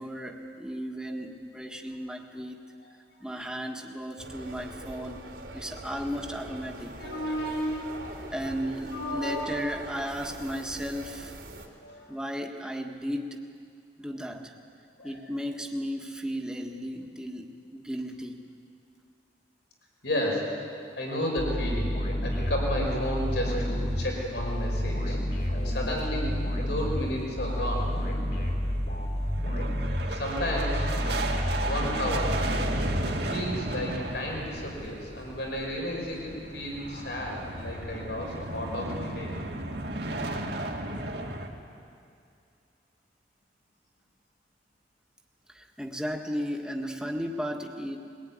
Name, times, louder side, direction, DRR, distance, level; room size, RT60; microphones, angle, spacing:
voice 1, 0.0-2.6 3.2-5.2 5.5-6.9 8.3-11.3 12.1-13.4 14.0-14.5 15.0-18.4 45.5-48.0, equal, 5° right, 2 dB, 1.6 m, -35 dB
sound 1, 4.2-11.7, right 1 dB, 85° right, 3.6 m, -42 dB
voice 2, 7.0-8.2 8.7-9.7 11.8-12.0 15.0-15.1 20.0-20.5 21.0-21.9 22.2-25.2 25.5-26.3 26.7-27.9 30.1-30.9 31.6-32.4 33.0-39.3, left 1 dB, 80° left, -1 dB, 5.4 m, -32 dB
sound 2, 21.4-33.6, equal, 60° left, 3.6 m, -30 dB
sound 3, 23.1-24.8 25.1-25.2 25.6-25.7 26.1-41.5, right 2 dB, 65° right, 2.3 m, -36 dB
22.0 x 20.0 x 9.6 m, 2.4 s
head